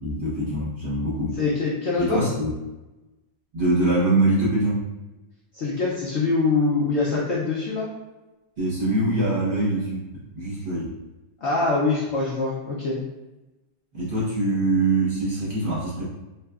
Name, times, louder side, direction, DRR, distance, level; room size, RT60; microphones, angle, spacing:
voice 1, 0.0-1.4 2.0-2.5 3.5-4.8 8.6-10.9 13.9-16.0, right 2 dB, 35° right, -9 dB, 1.0 m, -23 dB
voice 2, 1.4-2.3 5.5-7.9 11.4-13.0, left 3 dB, 70° left, -5 dB, 0.6 m, -24 dB
3.3 x 2.8 x 2.3 m, 1.1 s
omnidirectional pair, 1.8 m